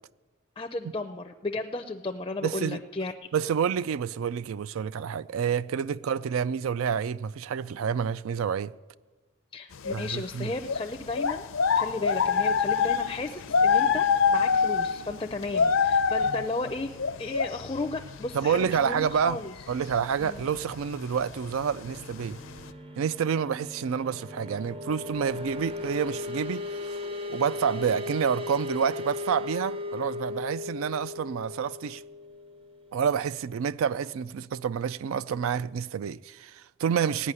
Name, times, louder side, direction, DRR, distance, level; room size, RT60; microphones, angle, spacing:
voice 1, 0.6-3.1 9.5-11.4 11.7-16.9 17.2-19.5 20.2-20.4, left 2 dB, 20° left, 0.4 m, -34 dB
voice 2, 2.4-2.8 3.3-8.7 9.9-10.5 18.3-19.4 19.7-22.4 23.0-27.0 27.3-32.0 32.9-37.3, right 7 dB, 80° right, 0.3 m, -28 dB
sound 1, 9.9-10.1 10.6-18.3 18.6-18.8 19.9-20.0 20.4-20.7 21.4-21.6 22.2-22.3 22.6-22.7, left 6 dB, 70° left, 0.5 m, -24 dB
sound 2, 21.0-33.3, left 3 dB, 25° right, 0.6 m, -37 dB
16.5 x 5.5 x 9.6 m
head